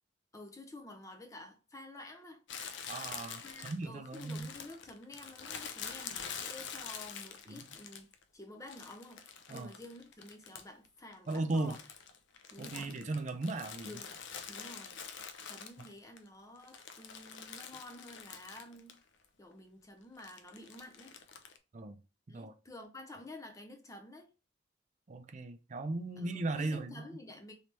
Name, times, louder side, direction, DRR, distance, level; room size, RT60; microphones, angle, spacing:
voice 1, 0.3-2.4 3.4-8.1 8.3-9.2 9.5-11.8 12.5-12.9 13.8-15.0 15.5-19.0 19.4-21.2 22.3-24.3 26.2-27.5, left 1 dB, 15° left, 0.5 m, -51 dB
Crumpling crinkling, 2.5-8.2 8.7-10.9 11.1-16.2 16.6-19.0 19.2-19.3 20.2-21.6, left 7 dB, 70° left, 0.5 m, -46 dB
voice 2, 2.9-4.5 7.5-7.6 9.5-9.7 11.3-11.7 12.6-14.0 21.7-22.0 22.3-22.5 25.1-27.0, right 2 dB, 40° right, 0.4 m, -37 dB
3.2 x 3.0 x 2.9 m
head